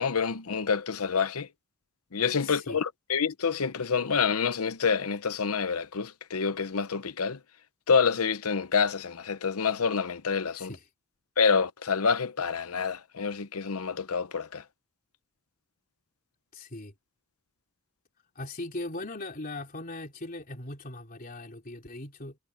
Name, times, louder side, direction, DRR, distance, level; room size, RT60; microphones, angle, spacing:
voice 1, 0.0-1.5 2.1-7.4 7.9-10.7 11.4-14.6, left 5 dB, 75° left, 0.8 m, -27 dB
voice 2, 2.4-2.8 10.6-10.8 16.5-16.9 18.4-22.4, left 2 dB, 40° left, 3.6 m, -39 dB
head